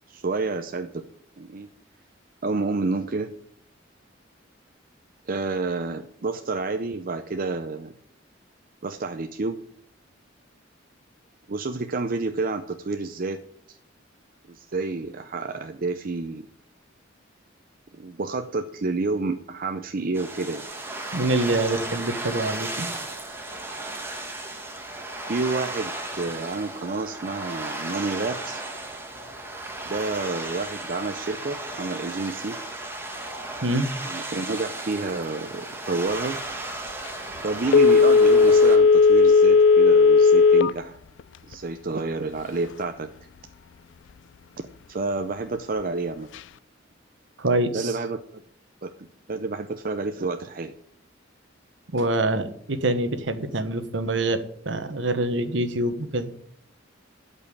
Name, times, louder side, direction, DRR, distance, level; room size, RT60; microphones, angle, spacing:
voice 1, 0.1-1.0 1.4-1.7 2.4-3.3 5.3-7.9 8.8-9.6 11.5-13.4 14.5-16.5 17.9-20.7 25.3-28.6 29.8-32.6 34.0-36.4 37.4-41.0 41.5-43.1 44.9-46.3 47.7-48.4 48.8-48.9 49.3-50.7, right 3 dB, 50° right, 7 dB, 0.7 m, -29 dB
sound 1, 20.1-38.8, right 2 dB, 10° right, 1.8 m, -35 dB
voice 2, 21.1-22.9 33.6-33.9 47.4-47.9 51.9-56.3, right 2 dB, 65° right, 10 dB, 1.2 m, -25 dB
Telephone, 37.7-40.8 41.2-41.3, left 4 dB, 65° left, 0.3 m, -15 dB
12.5 x 5.6 x 8.5 m, 0.65 s
head